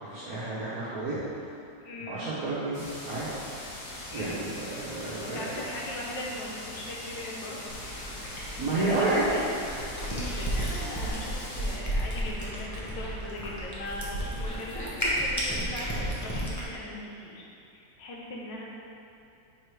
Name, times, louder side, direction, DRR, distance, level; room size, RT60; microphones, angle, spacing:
voice 1, 0.1-1.2 2.0-3.3 4.1-5.5 8.6-9.3, right 2 dB, 60° right, -10 dB, 1.4 m, -30 dB
voice 2, 1.8-2.2 4.1-4.4 4.7-4.8 5.2-7.7 8.8-9.5 10.0-18.6, left 1 dB, 90° left, -3 dB, 1.7 m, -39 dB
sound 1, 2.7-11.8, left 1 dB, 40° left, 1.8 m, -41 dB
Cat, 7.7-16.7, equal, 15° left, 0.7 m, -33 dB
5.5 x 4.7 x 4.8 m, 2.7 s
omnidirectional pair, 1.9 m